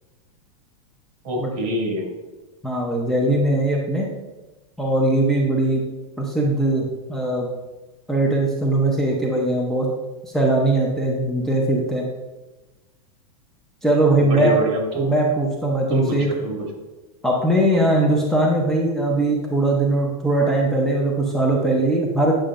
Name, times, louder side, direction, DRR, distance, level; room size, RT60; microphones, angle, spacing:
voice 1, 1.2-2.1 14.2-15.1 15.9-16.7, equal, 50° right, 0 dB, 2.3 m, -25 dB
voice 2, 2.6-4.1 4.8-5.8 6.2-7.5 8.1-9.9 10.2-12.0 13.8-14.5 15.0-16.3 17.2-22.3, right 1 dB, ahead, -4 dB, 0.7 m, -20 dB
8.7 x 6.3 x 2.5 m, 1.1 s
supercardioid pair, 155°, 18 cm